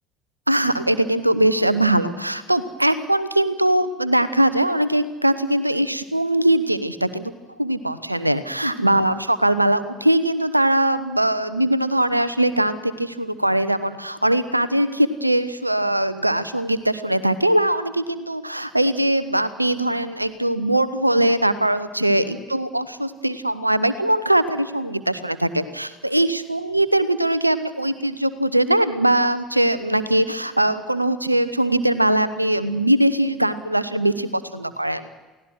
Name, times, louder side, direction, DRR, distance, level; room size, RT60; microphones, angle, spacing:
voice 1, 0.5-7.3 7.6-35.0, right 1 dB, 90° right, 15 dB, 0.9 m, -21 dB
29.0 x 17.5 x 6.3 m, 1.2 s
figure-of-eight pair, 60°, 0 cm